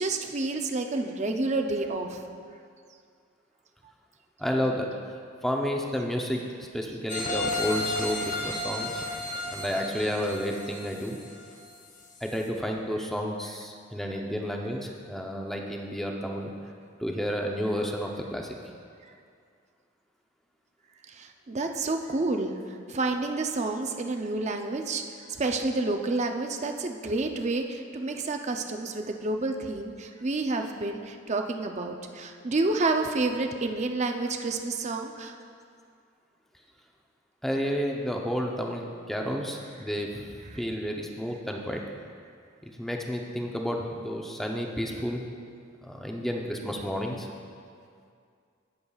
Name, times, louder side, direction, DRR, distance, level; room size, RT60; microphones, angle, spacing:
voice 1, 0.0-2.2 19.0-19.1 21.1-25.0 25.3-35.4, right 2 dB, 35° right, 4 dB, 0.6 m, -29 dB
voice 2, 4.4-4.9 5.4-9.0 9.5-11.2 12.2-16.5 17.0-18.5 37.4-41.8 42.6-45.2 45.8-47.3, equal, ahead, 0 dB, 0.7 m, -31 dB
sound 1, 7.1-11.8 12.3-12.4, left 2 dB, 40° left, 1.0 m, -33 dB
18.0 x 7.2 x 2.4 m, 2.3 s
head